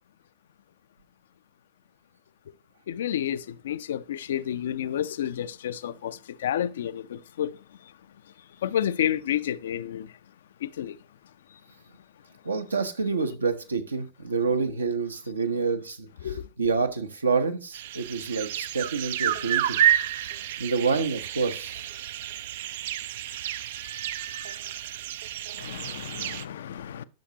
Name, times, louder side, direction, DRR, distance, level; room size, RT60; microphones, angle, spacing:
voice 1, 2.9-7.9 8.2-10.2 10.6-11.0 11.5-11.6 16.2-16.5 25.5-27.0, left 10 dB, 60° left, 0.4 m, -31 dB
voice 2, 12.4-19.8 20.6-21.8, right 4 dB, 75° right, 1.0 m, -28 dB
sound 1, 17.7-26.4, right 12 dB, 55° right, 0.4 m, -30 dB
10.5 x 6.4 x 2.8 m
figure-of-eight pair, 90°, 0 cm